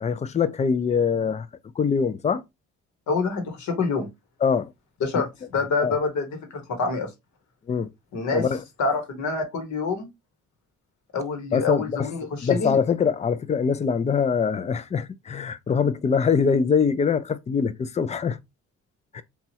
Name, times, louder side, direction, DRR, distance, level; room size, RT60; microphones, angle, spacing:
voice 1, 0.0-1.5 1.8-2.4 4.4-4.7 5.8-5.9 7.7-7.9 8.3-8.6 11.5-12.1 12.4-18.4 19.1-19.2, left 6 dB, 25° left, 0.3 m, -23 dB
voice 2, 3.1-4.1 5.0-5.3 5.5-7.1 8.1-8.4 8.8-10.1 11.1-12.7, left 4 dB, 70° left, 1.1 m, -26 dB
3.0 x 2.3 x 2.7 m
cardioid pair, 90°, 30 cm